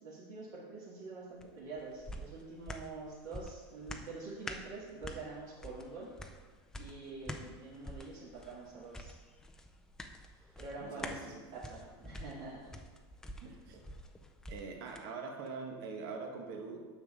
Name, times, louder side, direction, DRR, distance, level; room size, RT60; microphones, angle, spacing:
voice 1, 0.0-6.1 6.8-9.1 10.5-11.3 11.6-12.7 13.4-13.5, right 3 dB, 50° right, -7 dB, 2.0 m, -46 dB
sound 1, 1.4-15.1 15.5-15.6, left 1 dB, 5° left, 0.4 m, -48 dB
voice 2, 10.8-11.4 13.4-13.8 14.5-16.9, right 4 dB, 65° right, 2 dB, 1.7 m, -43 dB
9.3 x 7.2 x 3.7 m, 1.4 s
supercardioid pair, 160°, 13 cm